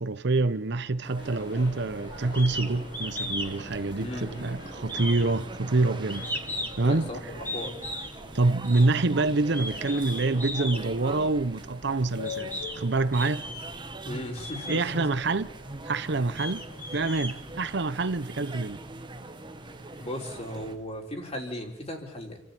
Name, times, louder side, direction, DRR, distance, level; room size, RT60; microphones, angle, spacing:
voice 1, 0.0-6.3 6.8-7.1 8.3-12.5 12.7-13.4 14.7-15.5 15.8-16.6 16.9-18.8, right 3 dB, 65° right, 0.8 m, -26 dB
sound 1, 1.0-20.8, right 2 dB, 25° right, 1.0 m, -42 dB
sound 2, 1.2-20.9, left 3 dB, 65° left, 3.8 m, -46 dB
sound 3, 2.3-2.7 2.9-3.5 3.8-4.5 4.9-6.9 7.4-8.1 8.6-8.9 9.4-10.8 11.6-11.7 12.2-12.8 13.1-13.8 14.3-14.8 15.5-15.6 16.1-17.9, equal, 10° left, 3.3 m, -36 dB
voice 2, 4.0-4.4 6.8-7.7 14.0-15.1 20.0-22.4, left 1 dB, 35° left, 4.1 m, -36 dB
28.5 x 13.5 x 8.5 m
head